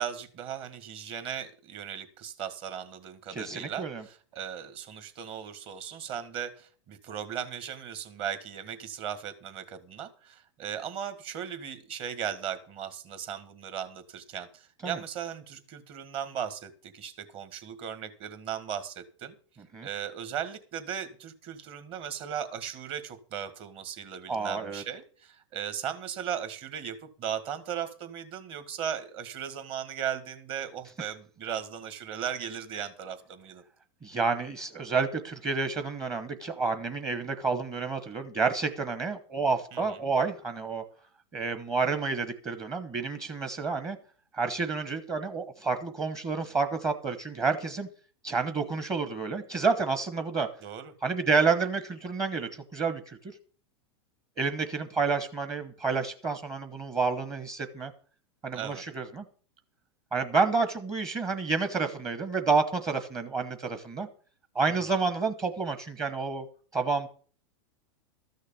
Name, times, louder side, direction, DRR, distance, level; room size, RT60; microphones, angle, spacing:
voice 1, 0.0-19.3 19.8-33.6 39.7-40.0 50.6-50.9 58.5-58.8 64.7-64.8, right 9 dB, 40° right, 10 dB, 1.9 m, -37 dB
voice 2, 3.3-4.0 14.8-15.0 19.7-19.9 24.3-24.8 34.0-40.8 41.3-44.0 44.3-47.9 48.2-50.5 51.0-53.3 54.4-57.9 58.4-59.2 60.1-64.1 64.5-66.4 66.7-67.1, right 4 dB, 20° right, 8 dB, 1.1 m, -29 dB
13.5 x 6.5 x 7.0 m, 0.42 s
supercardioid pair, 130°, 15 cm